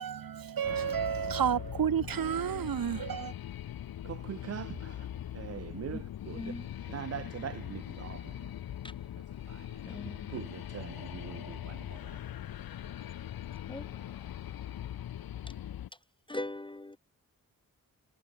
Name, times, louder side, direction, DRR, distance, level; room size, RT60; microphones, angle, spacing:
voice 1, 0.0-3.3, right 8 dB, 75° right, 2.0 m, -31 dB
sound 1, 0.6-15.9, left 11 dB, 85° left, 1.0 m, -41 dB
voice 2, 4.1-4.9 5.3-6.5 6.9-8.2 9.5-9.6 10.3-12.0, right 10 dB, 45° right, 0.4 m, -42 dB
voice 3, 6.3-6.7 9.9-10.2 13.7-13.8 16.3-17.0, left 2 dB, 15° left, 0.7 m, -39 dB
cardioid pair, 50°, 35 cm